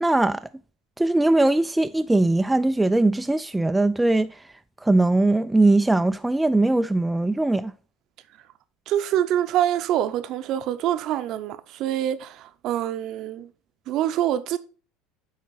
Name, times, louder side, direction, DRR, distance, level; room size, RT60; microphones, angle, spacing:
voice 1, 0.0-0.5 1.0-4.3 4.8-7.7, right 2 dB, 5° right, 0.3 m, -20 dB
voice 2, 8.9-13.5 13.9-14.6, right 11 dB, 55° right, 0.6 m, -25 dB
9.6 x 4.0 x 4.1 m
supercardioid pair, 120°, 0 cm